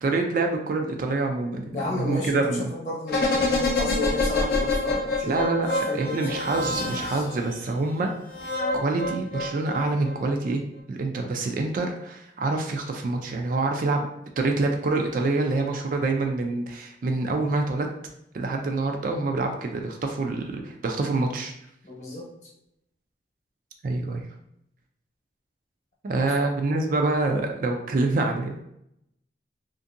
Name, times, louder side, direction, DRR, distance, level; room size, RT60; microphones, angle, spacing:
voice 1, 0.0-2.7 5.2-5.7 5.9-8.1 8.7-10.6 10.9-14.1 14.4-17.9 18.3-21.5 23.8-24.2 26.0-28.6, right 3 dB, 50° right, 4 dB, 0.3 m, -26 dB
voice 2, 1.7-5.4 5.7-7.2 21.8-22.3, left 2 dB, 40° left, -3 dB, 0.9 m, -32 dB
sound 1, 3.1-7.5 8.3-10.1 10.4-10.5, left 2 dB, 55° left, 0.5 m, -26 dB
2.6 x 2.5 x 2.5 m, 0.77 s
head